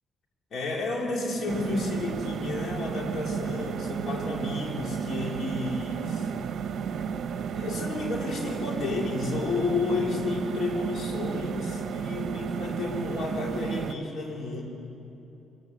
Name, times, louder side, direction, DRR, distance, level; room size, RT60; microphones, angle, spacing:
voice 1, 0.5-6.3 7.5-14.6, left 3 dB, 60° left, 0 dB, 4.2 m, -31 dB
sound 1, 1.5-13.9, right 7 dB, 60° right, 0.9 m, -32 dB
23.0 x 19.0 x 8.3 m, 2.9 s
cardioid pair, 90°, 0 cm